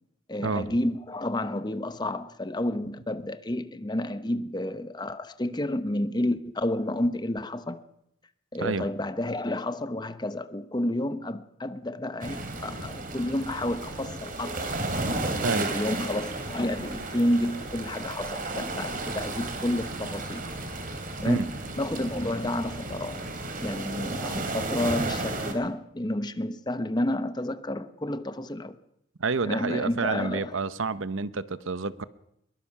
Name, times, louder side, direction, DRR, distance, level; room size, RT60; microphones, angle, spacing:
voice 1, 0.3-7.8 8.5-14.7 15.2-20.4 21.2-23.2 23.6-28.8 29.4-30.6, left 1 dB, 20° left, 0.8 m, -30 dB
sound 1, 12.2-25.5, right 2 dB, 45° right, 3.0 m, -33 dB
voice 2, 29.2-32.0, right 4 dB, 85° right, 0.9 m, -29 dB
22.0 x 21.5 x 5.9 m
head